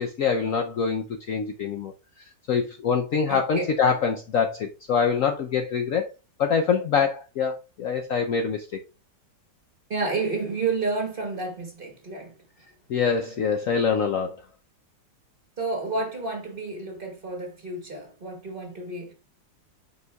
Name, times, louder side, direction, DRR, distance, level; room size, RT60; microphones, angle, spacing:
voice 1, 0.0-1.9 2.5-6.1 6.4-8.7 12.9-14.4, left 6 dB, 65° left, 0.8 m, -24 dB
voice 2, 3.3-3.7 9.9-12.3 15.6-19.1, right 3 dB, 35° right, 1.3 m, -30 dB
7.9 x 5.3 x 2.3 m
omnidirectional pair, 1.9 m